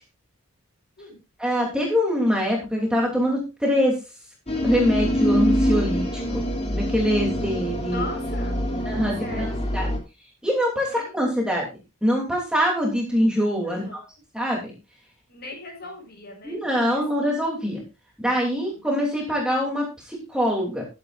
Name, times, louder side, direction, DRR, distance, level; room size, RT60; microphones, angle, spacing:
voice 1, 1.4-4.0 4.6-6.4 6.7-8.0 8.9-9.5 9.7-9.9 10.4-11.7 12.0-13.8 14.3-14.7 16.4-17.8 18.2-20.8, equal, 5° right, -2 dB, 2.9 m, -24 dB
sound 1, 4.5-10.0, equal, 30° left, 2.8 m, -25 dB
voice 2, 7.9-8.9 9.2-9.6 10.8-11.4 13.6-14.1 15.3-17.0 18.4-18.9, left 2 dB, 45° left, 3 dB, 7.0 m, -39 dB
14.0 x 11.5 x 2.5 m, 0.28 s
head